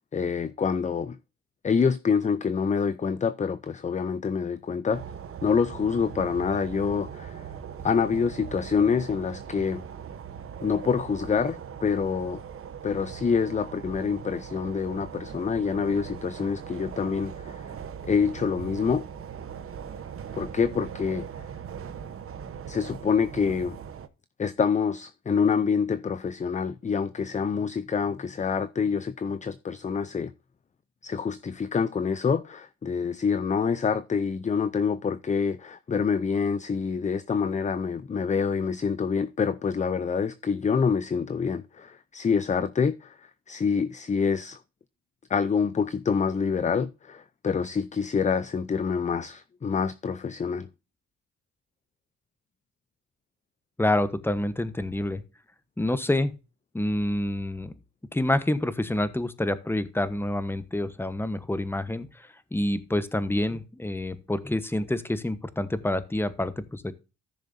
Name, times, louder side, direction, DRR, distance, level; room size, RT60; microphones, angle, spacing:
voice 1, 0.1-1.2 1.6-5.0 5.4-7.4 7.8-9.9 10.6-12.4 12.8-17.6 18.0-19.0 20.4-21.3 22.7-23.8 24.4-30.3 31.0-44.6 45.3-50.7, left 6 dB, 25° left, 0.6 m, -26 dB
sound 1, 4.9-24.1, right 8 dB, 45° right, 1.0 m, -40 dB
voice 2, 53.8-55.2 55.8-56.3 56.7-57.7 58.1-66.9, left 1 dB, 5° left, 1.1 m, -27 dB
14.5 x 6.6 x 2.7 m
cardioid pair, 90°, 30 cm